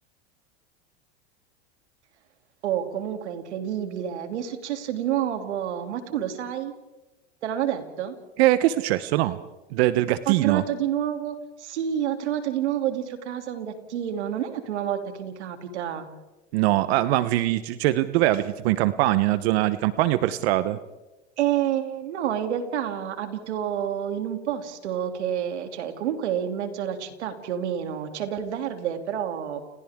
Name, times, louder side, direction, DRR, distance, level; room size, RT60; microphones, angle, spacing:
voice 1, 2.6-6.7 7.4-8.2 10.3-16.1 21.4-29.6, right 10 dB, 85° right, 6 dB, 2.9 m, -29 dB
voice 2, 8.4-9.4 9.7-10.6 16.5-20.8, right 15 dB, 65° right, 14 dB, 1.0 m, -22 dB
30.0 x 30.0 x 3.7 m, 1.1 s
supercardioid pair, 115°, 33 cm